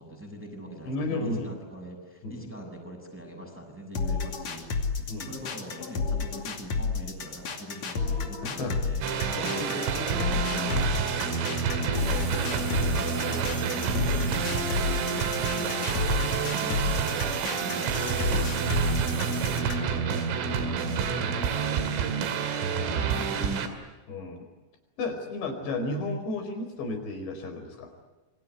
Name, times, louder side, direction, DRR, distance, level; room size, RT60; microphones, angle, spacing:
voice 1, 0.0-4.9 5.2-9.1 9.3-13.6 14.0-17.2 17.6-19.8 22.9-23.7, equal, ahead, 0 dB, 6.9 m, -42 dB
voice 2, 0.9-1.5 2.2-2.5 5.1-5.3 8.4-8.8 9.5-9.7 12.3-12.7 17.2-17.7 20.1-20.5 20.9-21.5 24.1-24.5 25.0-27.9, left 2 dB, 60° left, 6 dB, 6.7 m, -34 dB
sound 1, 4.0-19.9, left 4 dB, 40° left, 3.0 m, -31 dB
sound 2, 9.0-23.7, right 6 dB, 80° right, 4.9 m, -28 dB
sound 3, 11.9-19.6, right 8 dB, 60° right, 4.7 m, -41 dB
29.0 x 24.0 x 8.3 m, 1.1 s
omnidirectional pair, 5.8 m